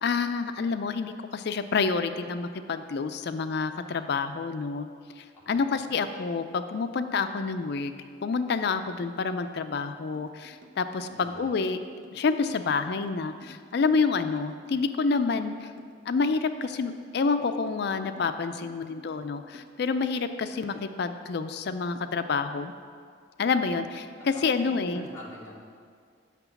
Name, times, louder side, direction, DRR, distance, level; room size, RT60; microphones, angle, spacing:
voice 1, 0.0-4.9 5.2-7.9 8.2-11.8 12.1-15.7 16.1-22.7 23.4-25.1, left 4 dB, 60° left, 10 dB, 0.4 m, -28 dB
voice 2, 5.3-5.9 11.1-11.5 24.2-24.3 24.6-25.6, equal, 15° left, -6 dB, 1.7 m, -45 dB
sound 1, 10.1-20.7, equal, 70° right, 0.7 m, -52 dB
5.9 x 5.9 x 7.0 m, 2.1 s
head